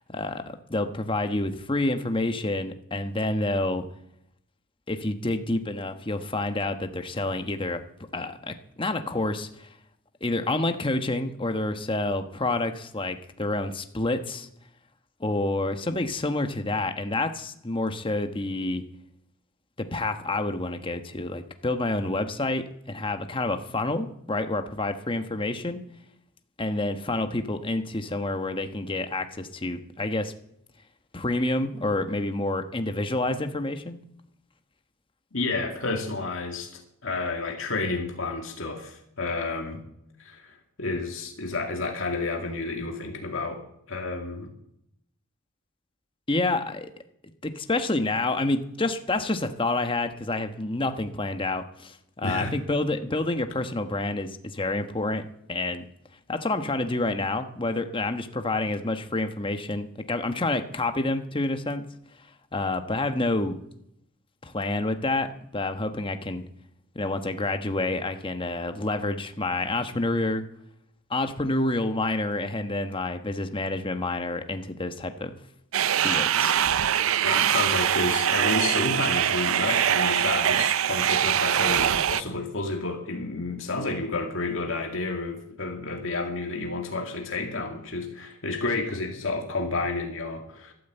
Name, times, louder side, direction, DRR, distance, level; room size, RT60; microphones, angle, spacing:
voice 1, 0.0-3.8 4.9-7.8 8.1-9.7 10.2-14.5 15.2-18.8 19.8-25.8 26.6-30.3 31.1-34.0 46.3-46.9 47.4-55.2 55.5-55.9 56.3-61.8 62.5-63.6 64.4-66.4 66.9-70.4 71.1-75.3 76.0-76.6, left 2 dB, 25° left, 7 dB, 1.2 m, -28 dB
voice 2, 35.3-39.8 40.2-43.6 43.9-44.5 52.2-52.6 77.2-90.7, left 3 dB, 65° left, 2 dB, 2.3 m, -30 dB
sound 1, 75.7-82.2, right 10 dB, 75° right, 0.5 m, -23 dB
13.0 x 12.5 x 8.1 m, 0.75 s
head